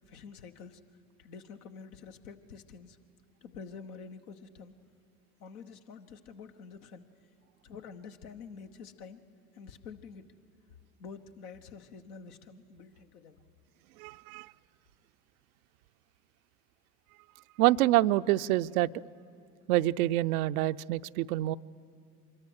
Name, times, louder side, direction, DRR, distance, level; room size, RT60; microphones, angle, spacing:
voice 1, 0.1-0.8 1.2-3.0 3.4-4.8 5.4-7.1 7.6-9.2 9.5-10.3 11.0-13.4, left 5 dB, 75° left, 8 dB, 1.2 m, -48 dB
voice 2, 14.0-14.5 17.6-18.9 19.7-21.6, right 16 dB, 70° right, 14 dB, 0.6 m, -26 dB
24.5 x 21.0 x 6.4 m, 2.2 s
hypercardioid pair, 65°, 45 cm